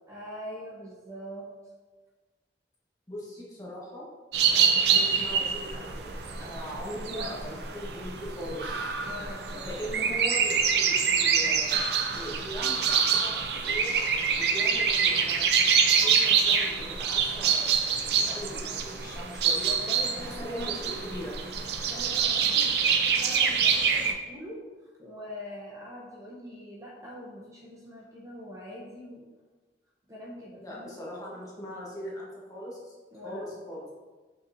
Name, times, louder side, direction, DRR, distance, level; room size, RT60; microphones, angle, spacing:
voice 1, 0.1-1.5 4.5-4.8 7.1-7.4 9.0-9.8 19.6-21.0 21.8-29.3 30.1-30.9 33.1-33.5, left 1 dB, 20° right, -4 dB, 0.9 m, -43 dB
voice 2, 3.1-4.1 4.4-6.1 6.4-8.9 9.6-13.9 14.3-15.5 16.0-19.7 20.1-21.3 30.6-32.9 33.2-33.9, equal, 20° left, -5 dB, 1.6 m, -40 dB
sound 1, 4.3-24.1, right 6 dB, 65° right, 0.6 m, -26 dB
7.1 x 5.6 x 2.8 m, 1.3 s
head